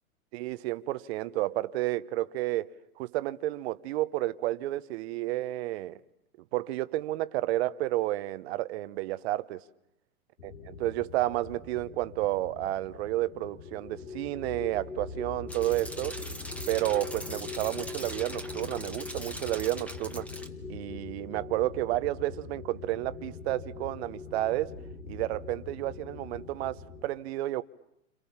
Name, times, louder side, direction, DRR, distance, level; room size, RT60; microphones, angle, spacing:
voice 1, 0.3-6.0 6.5-9.6 10.4-16.2 16.7-20.3 20.7-24.7 25.1-27.6, right 16 dB, 45° right, 1.0 m, -31 dB
sound 1, 10.4-27.1, left 4 dB, 85° left, 5.2 m, -42 dB
sound 2, 15.5-20.5, equal, 5° left, 1.3 m, -42 dB
29.0 x 27.5 x 7.3 m
hypercardioid pair, 130°, 43 cm